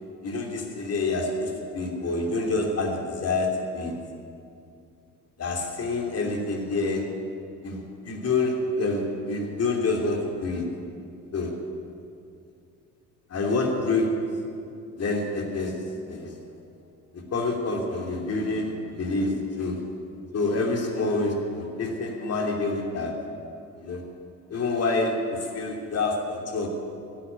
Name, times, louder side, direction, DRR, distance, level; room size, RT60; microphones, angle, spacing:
voice 1, 0.2-4.0 5.4-7.1 7.6-10.7 11.3-11.6 13.3-14.3 15.0-15.8 16.1-16.4 17.1-19.9 20.3-23.2 23.8-24.0 24.5-26.7, left 3 dB, 35° left, 1 dB, 3.1 m, -27 dB
12.0 x 10.0 x 9.5 m, 2.4 s
figure-of-eight pair, 55°, 41 cm